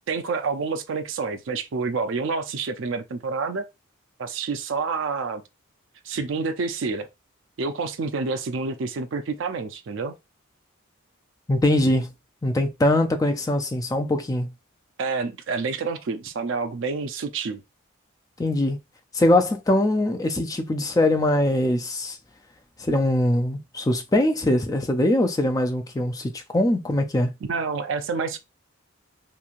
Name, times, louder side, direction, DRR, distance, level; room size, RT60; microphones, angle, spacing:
voice 1, 0.1-3.6 4.2-5.4 6.1-7.1 7.6-10.1 15.0-17.6 27.4-28.4, right 4 dB, 60° right, 0.4 m, -28 dB
voice 2, 11.5-12.1 12.4-14.5 18.4-18.8 19.1-22.2 22.8-27.3, left 1 dB, 15° left, 0.3 m, -22 dB
3.0 x 2.7 x 2.4 m
head